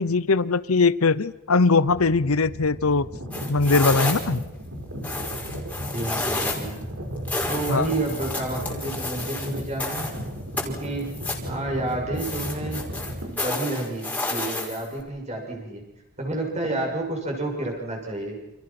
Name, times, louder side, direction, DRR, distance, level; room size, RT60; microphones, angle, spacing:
voice 1, 0.0-3.1 3.5-4.4 7.7-7.8, left 4 dB, 80° left, 17 dB, 0.9 m, -20 dB
sound 1, 1.9-13.3, equal, 70° right, 5.8 m, -35 dB
sound 2, 3.3-4.4 5.0-6.8 7.3-10.2 10.6-11.5 12.2-15.0, left 2 dB, 5° left, 5.3 m, -30 dB
voice 2, 5.9-6.8 7.5-10.1 10.6-11.1 11.5-12.9 13.2-15.8 16.2-18.4, right 2 dB, 30° right, 1 dB, 7.5 m, -30 dB
29.5 x 28.5 x 6.1 m, 0.92 s
head